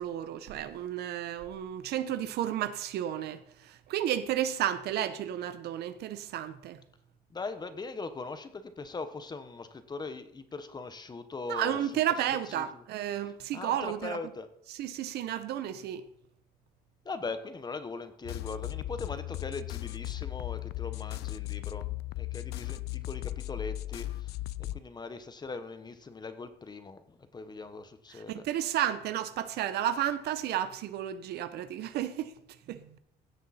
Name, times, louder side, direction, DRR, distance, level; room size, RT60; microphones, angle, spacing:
voice 1, 0.0-6.8 11.5-14.2 14.7-16.0 28.1-32.3 32.7-33.0, right 11 dB, 75° right, 0.9 m, -32 dB
voice 2, 7.3-11.8 12.5-12.8 13.5-14.5 17.0-21.9 22.2-28.5, left 3 dB, 25° left, 1.1 m, -40 dB
sound 1, 18.2-24.8, left 17 dB, 75° left, 0.4 m, -37 dB
16.0 x 6.7 x 4.2 m
cardioid pair, 110°, 17 cm